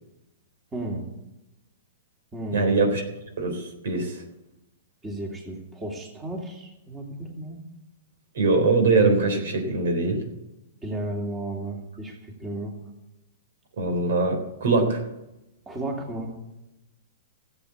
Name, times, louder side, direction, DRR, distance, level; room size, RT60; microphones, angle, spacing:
voice 1, 0.7-1.0 2.3-2.8 5.0-7.6 10.8-12.7 15.7-16.3, right 1 dB, 15° right, 0 dB, 3.1 m, -33 dB
voice 2, 2.5-3.0 3.4-4.2 8.4-10.2 13.8-15.0, right 3 dB, 75° right, 5 dB, 3.8 m, -22 dB
13.5 x 8.3 x 8.6 m, 0.93 s
hypercardioid pair, 135°, 0 cm